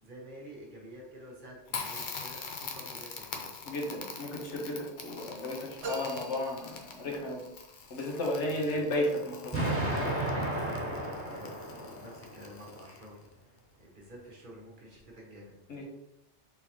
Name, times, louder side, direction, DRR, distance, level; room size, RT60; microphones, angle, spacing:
voice 1, 0.0-3.5 8.7-8.8 11.0-13.2 13.4-15.6, equal, 45° right, -2 dB, 1.1 m, -50 dB
Crackle, 1.7-13.3, left 5 dB, 55° left, 0.6 m, -44 dB
voice 2, 3.6-7.4 7.9-10.1 15.7-15.8, left 1 dB, 75° left, -2 dB, 1.3 m, -34 dB
sound 1, 5.8-7.5, right 3 dB, 70° right, 1.2 m, -43 dB
Explosion, 9.5-12.5, right 1 dB, 10° right, 1.4 m, -33 dB
3.9 x 3.9 x 2.9 m, 0.93 s
omnidirectional pair, 1.2 m